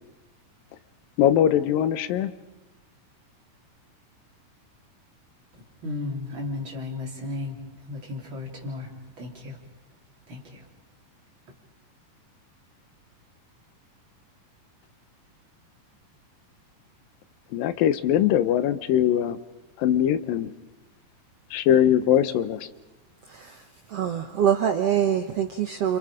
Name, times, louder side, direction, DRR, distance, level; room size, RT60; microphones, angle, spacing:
voice 1, 1.2-2.3 17.5-19.4 19.8-20.5 21.5-22.7, left 10 dB, 90° left, 13 dB, 2.7 m, -21 dB
voice 2, 5.8-8.9 9.2-9.6 10.3-10.6, left 2 dB, 35° right, -1 dB, 4.2 m, -34 dB
voice 3, 23.2-26.0, right 9 dB, 65° right, 6 dB, 1.7 m, -25 dB
30.0 x 27.0 x 5.1 m, 1.0 s
omnidirectional pair, 3.9 m